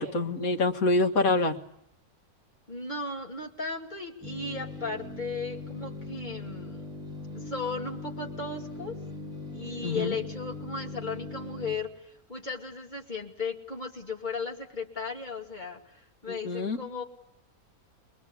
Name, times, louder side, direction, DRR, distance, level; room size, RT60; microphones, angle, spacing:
voice 1, 0.0-1.6 9.8-10.1 16.3-16.8, left 2 dB, 75° left, 4 dB, 2.1 m, -26 dB
voice 2, 2.7-6.8 7.3-9.0 9.5-17.0, left 4 dB, 30° left, 1 dB, 2.6 m, -36 dB
sound 1, 4.2-11.8, left 2 dB, 5° right, 7.1 m, -40 dB
24.0 x 21.5 x 8.3 m, 0.79 s
omnidirectional pair, 1.5 m